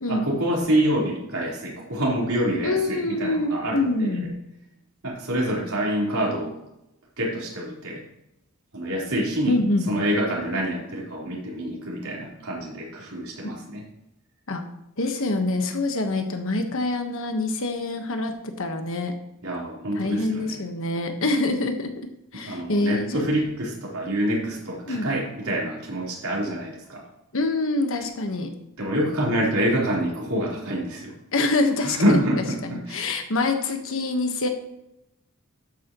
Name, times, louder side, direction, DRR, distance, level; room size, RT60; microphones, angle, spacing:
voice 1, 0.1-4.2 5.0-6.5 7.2-8.0 8.7-9.6 9.9-13.8 19.4-20.6 22.4-27.0 28.8-31.1 31.8-33.1, right 1 dB, 80° right, -4 dB, 4.1 m, -26 dB
voice 2, 2.6-4.3 9.5-9.9 14.5-14.6 15.0-19.1 19.9-22.1 22.3-23.2 24.9-25.1 27.3-28.5 31.3-32.2 32.6-34.5, left 2 dB, 65° left, 5 dB, 1.4 m, -25 dB
12.0 x 9.2 x 3.1 m, 0.85 s
head